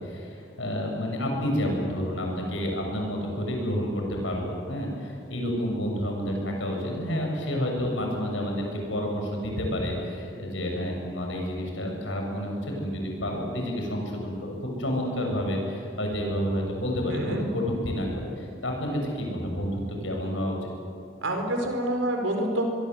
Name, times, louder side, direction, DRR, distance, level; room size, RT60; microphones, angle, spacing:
voice 1, 0.0-20.7, equal, 75° left, 1 dB, 7.0 m, -29 dB
voice 2, 21.2-22.6, right 1 dB, 90° right, 3 dB, 4.7 m, -27 dB
25.0 x 22.5 x 8.1 m, 2.5 s
head